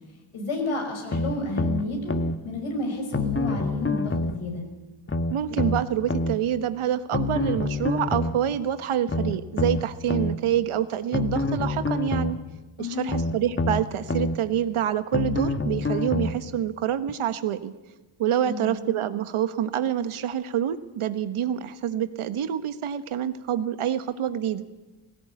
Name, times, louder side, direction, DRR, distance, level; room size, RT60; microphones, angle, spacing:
voice 1, 0.3-2.1 2.4-4.6 12.8-13.2 18.4-18.7, left 2 dB, 75° left, 2 dB, 6.3 m, -30 dB
sound 1, 1.1-2.4 3.1-4.4 5.1-6.4 7.1-8.4 9.1-10.4 11.1-12.4 13.1-14.4 15.1-16.4 17.1-17.2, left 2 dB, 25° left, 1.4 m, -26 dB
voice 2, 5.3-12.4 12.8-17.7 18.2-24.7, right 10 dB, 80° right, 11 dB, 1.3 m, -27 dB
18.5 x 17.0 x 9.3 m, 1.1 s
cardioid pair, 60°, 50 cm